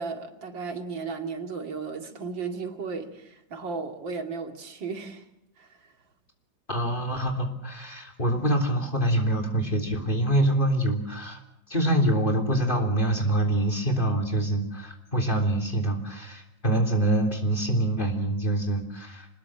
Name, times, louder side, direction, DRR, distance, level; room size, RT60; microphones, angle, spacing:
voice 1, 0.0-5.2 5.6-5.9, right 4 dB, 90° right, 3.1 m, -35 dB
voice 2, 6.7-11.4 11.7-19.3, right 1 dB, 25° left, 3.6 m, -25 dB
27.0 x 20.0 x 7.7 m
omnidirectional pair, 2.0 m